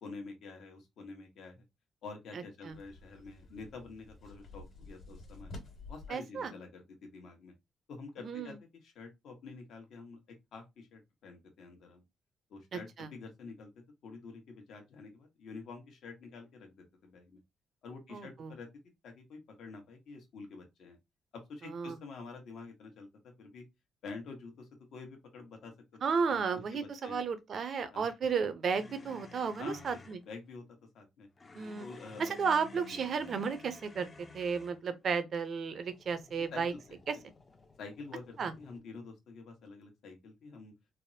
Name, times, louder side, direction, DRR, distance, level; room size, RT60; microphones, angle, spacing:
voice 1, 0.0-1.6 2.0-5.5 5.9-7.5 7.9-12.0 12.5-13.7 14.0-17.4 17.8-18.7 19.0-21.0 21.3-23.1 23.4-23.6 24.0-26.0 26.3-26.4 26.7-27.2 27.9-28.1 29.6-30.0 30.3-30.6 30.9-31.3 31.8-32.2 32.9-33.0 36.5-37.0 37.8-40.7, left 4 dB, 70° left, 1.0 m, -48 dB
sound 1, 2.7-6.1, left 2 dB, 50° left, 1.4 m, -50 dB
voice 2, 6.1-6.5 8.2-8.6 13.0-13.1 18.1-18.5 21.6-22.0 26.0-30.2 31.5-31.9 32.2-34.1 34.3-36.7 37.1-37.2 38.4-38.5, right 5 dB, 55° right, 0.5 m, -33 dB
sound 2, 28.7-30.2 31.4-34.9 35.8-38.8, left 3 dB, 30° left, 0.5 m, -53 dB
3.4 x 2.1 x 2.6 m
cardioid pair, 90°, 0 cm